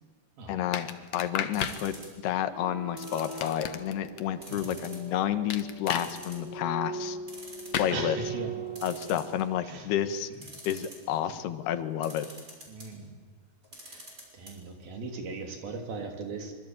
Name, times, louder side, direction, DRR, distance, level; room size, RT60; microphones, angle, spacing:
voice 1, 0.5-1.9 2.2-7.2 7.8-8.2 8.8-10.3 10.6-12.3, left 10 dB, 85° left, 11 dB, 3.3 m, -30 dB
sound 1, 0.7-1.8 3.2-4.2 5.5-6.1 7.7-7.9, left 8 dB, 60° left, 1.8 m, -33 dB
sound 2, 1.5-2.3 3.0-3.9 4.4-5.1 5.4-5.5 5.9-6.7 7.0-7.1 7.3-7.9 8.7-9.6 10.3-11.2 12.0-12.9 13.6-14.5 14.8-14.9 15.2-15.3, right 1 dB, 20° right, 6.3 m, -46 dB
sound 3, 2.5-9.4, right 3 dB, 10° left, 4.4 m, -40 dB
voice 2, 7.9-8.5 9.6-9.9 12.7-13.1 13.8-16.5, right 3 dB, 70° right, 4 dB, 4.9 m, -39 dB
25.0 x 23.5 x 9.1 m, 1.4 s
omnidirectional pair, 4.5 m